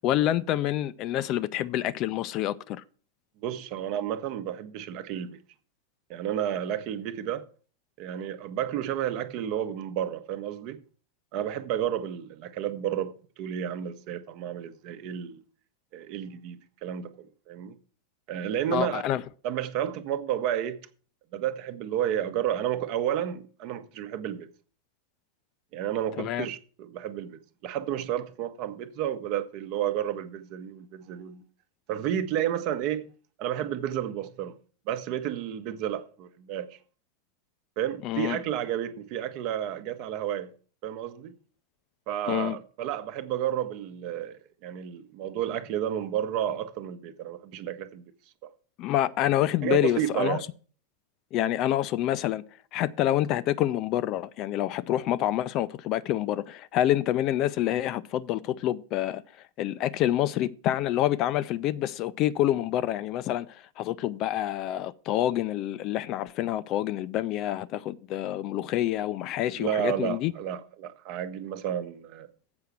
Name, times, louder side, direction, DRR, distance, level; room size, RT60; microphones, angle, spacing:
voice 1, 0.0-2.8 18.7-19.2 26.2-26.5 38.0-38.4 42.3-42.6 48.8-50.4 51.3-52.4 52.7-59.2 59.6-70.3, left 13 dB, 40° left, 0.4 m, -27 dB
voice 2, 3.4-5.3 6.1-7.5 8.0-10.8 11.3-15.4 15.9-17.7 18.3-19.0 19.4-20.8 21.3-24.5 25.7-31.4 31.9-33.1 33.4-34.5 34.9-36.8 37.8-40.5 40.8-41.3 42.1-48.0 48.4-48.5 49.6-50.4 69.5-72.3, right 10 dB, 45° right, 0.9 m, -31 dB
7.9 x 5.7 x 7.6 m
figure-of-eight pair, 90°, 0 cm